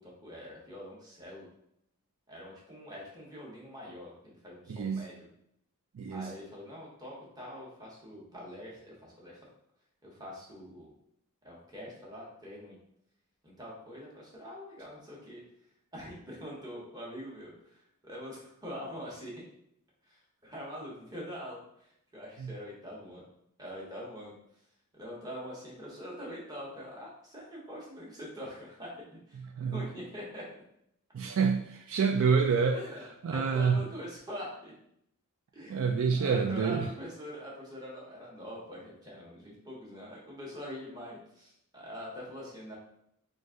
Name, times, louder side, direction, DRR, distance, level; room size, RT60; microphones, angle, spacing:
voice 1, 0.0-1.5 2.3-5.3 6.1-9.4 10.0-10.9 11.4-12.8 13.4-15.4 15.9-19.3 20.1-21.6 22.1-23.3 23.6-24.3 24.9-28.9 29.3-29.4 29.7-30.5 32.7-34.7 35.5-42.7, equal, 20° right, -4 dB, 1.1 m, -44 dB
voice 2, 4.7-5.0 5.9-6.3 22.4-22.5 29.6-29.8 31.1-32.8 33.2-33.8 35.7-36.9, right 5 dB, 65° right, 3 dB, 0.4 m, -27 dB
3.9 x 2.5 x 3.7 m, 0.73 s
head